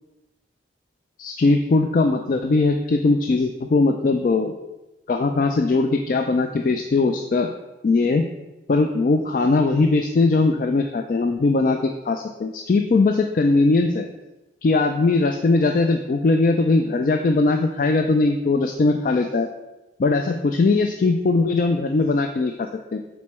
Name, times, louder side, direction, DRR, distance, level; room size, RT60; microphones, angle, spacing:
voice 1, 1.2-4.5 5.1-7.5 7.8-8.2 8.7-14.1 14.6-19.5 20.0-23.1, left 3 dB, 45° left, 5 dB, 0.3 m, -20 dB
6.4 x 4.2 x 4.3 m, 1.0 s
head